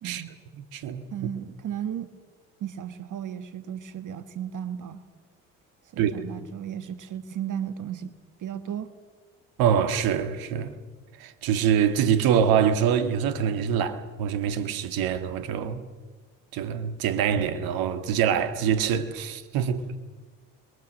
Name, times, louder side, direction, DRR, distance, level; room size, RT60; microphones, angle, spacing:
voice 1, 0.0-0.4 1.1-2.1 2.6-5.0 5.9-8.9, right 9 dB, 55° right, 1.4 m, -35 dB
voice 2, 0.6-1.0 6.0-6.1 9.6-10.7 11.2-15.8 16.5-19.8, right 8 dB, 75° right, 1.9 m, -24 dB
29.5 x 22.5 x 6.5 m
hypercardioid pair, 55°, 36 cm